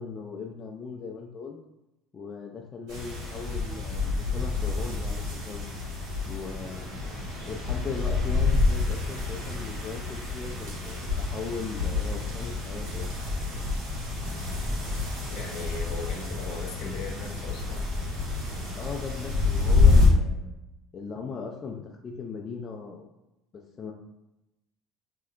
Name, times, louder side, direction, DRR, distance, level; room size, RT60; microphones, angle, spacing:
voice 1, 0.0-1.6 2.1-5.7 6.3-6.9 7.5-13.1 18.7-20.6 20.9-23.1 23.8-23.9, left 5 dB, 30° left, 0 dB, 0.3 m, -38 dB
sound 1, 2.9-20.1, left 3 dB, 75° right, 1.4 m, -27 dB
voice 2, 15.3-17.9, left 3 dB, 70° left, 0 dB, 0.7 m, -38 dB
3.1 x 2.7 x 2.4 m, 0.92 s
supercardioid pair, 115°, 0 cm